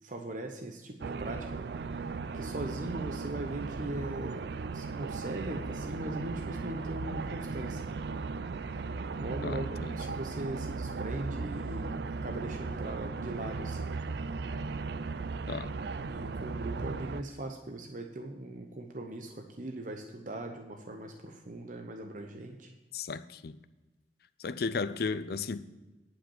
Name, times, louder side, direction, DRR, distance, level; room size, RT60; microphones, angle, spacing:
voice 1, 0.0-2.0 2.3-4.5 4.7-7.9 9.2-13.9 16.0-22.7, right 1 dB, 45° right, 0.8 m, -40 dB
sound 1, 1.0-17.2, right 4 dB, 60° right, 0.4 m, -37 dB
voice 2, 9.4-10.2 15.5-15.7 22.9-23.6 24.4-25.6, left 4 dB, 55° left, 0.5 m, -35 dB
10.0 x 5.8 x 7.2 m
head